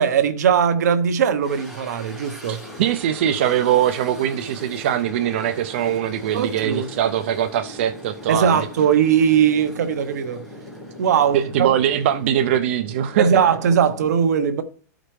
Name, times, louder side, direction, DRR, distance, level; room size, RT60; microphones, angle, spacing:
voice 1, 0.0-2.6 6.3-6.9 8.3-10.4 11.0-11.7 13.2-14.6, right 8 dB, 70° right, 0.9 m, -19 dB
sound 1, 1.4-12.6, right 1 dB, ahead, 1.6 m, -42 dB
voice 2, 2.5-8.7 11.3-13.4, right 10 dB, 40° right, 0.4 m, -22 dB
sound 2, 2.6-14.1, left 1 dB, 20° left, 4.6 m, -41 dB
13.5 x 5.0 x 3.1 m
supercardioid pair, 175°, 9 cm